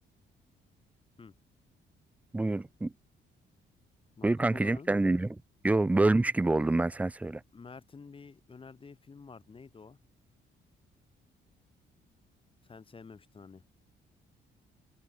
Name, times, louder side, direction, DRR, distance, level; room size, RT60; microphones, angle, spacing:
voice 1, 2.3-2.9 4.2-7.4, right 2 dB, 5° right, 0.3 m, -27 dB
voice 2, 4.2-4.9 7.5-10.0 12.6-13.6, left 5 dB, 25° left, 1.0 m, -50 dB
cardioid pair, 90°, 20 cm